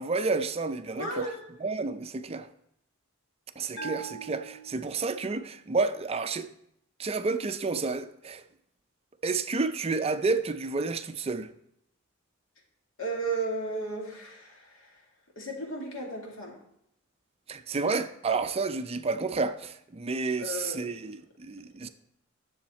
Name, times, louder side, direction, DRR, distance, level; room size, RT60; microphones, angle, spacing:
voice 1, 0.0-1.3 1.6-2.5 3.6-6.5 7.0-8.4 9.2-11.5 17.5-21.9, right 4 dB, 30° right, 0.5 m, -30 dB
voice 2, 1.0-1.5 13.0-14.6 15.4-16.5 20.4-21.0, right 2 dB, 80° left, 2.3 m, -34 dB
Bell, 3.8-5.4, right 4 dB, 60° left, 1.5 m, -42 dB
10.0 x 7.1 x 4.2 m
head